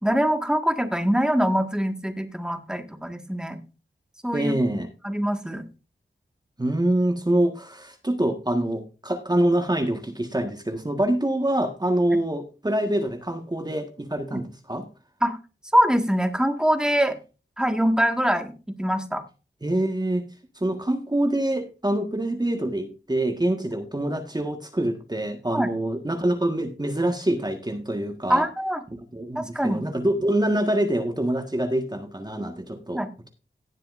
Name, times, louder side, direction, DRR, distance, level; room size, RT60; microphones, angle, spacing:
voice 1, 0.0-3.6 4.2-5.6 15.2-15.4 15.7-17.2 17.6-18.5 18.8-19.2 25.5-25.7 28.3-28.8 29.4-29.9 32.9-33.1, equal, 5° right, 6 dB, 1.8 m, -23 dB
voice 2, 4.3-4.9 6.6-14.9 19.6-20.2 20.5-28.5 29.1-33.3, right 1 dB, 20° right, 5 dB, 1.6 m, -25 dB
17.5 x 7.4 x 2.6 m, 0.33 s
cardioid pair, 45°, 20 cm